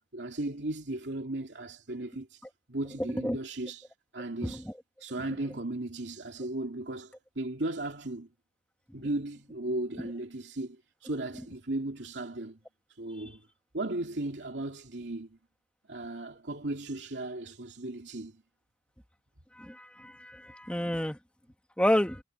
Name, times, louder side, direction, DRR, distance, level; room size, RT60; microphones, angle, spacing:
voice 1, 0.1-2.4 2.7-3.9 4.1-4.7 5.0-8.3 8.9-12.6 13.0-13.4 13.7-15.4 15.9-18.4, right 2 dB, 75° right, 2.5 m, -36 dB
voice 2, 19.6-21.2 21.8-22.2, left 1 dB, 5° left, 1.9 m, -29 dB
head